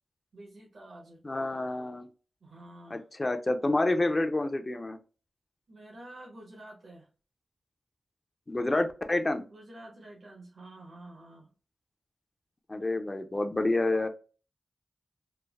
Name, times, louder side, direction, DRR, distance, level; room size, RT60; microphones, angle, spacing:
voice 1, 0.3-1.2 2.4-3.0 5.7-7.1 9.4-11.5, right 1 dB, 80° right, -3 dB, 1.0 m, -49 dB
voice 2, 1.2-2.1 2.9-5.0 8.5-9.4 12.7-14.1, left 2 dB, 35° left, 8 dB, 0.4 m, -28 dB
3.1 x 2.0 x 2.2 m, 0.37 s
cardioid pair, 55°, 0 cm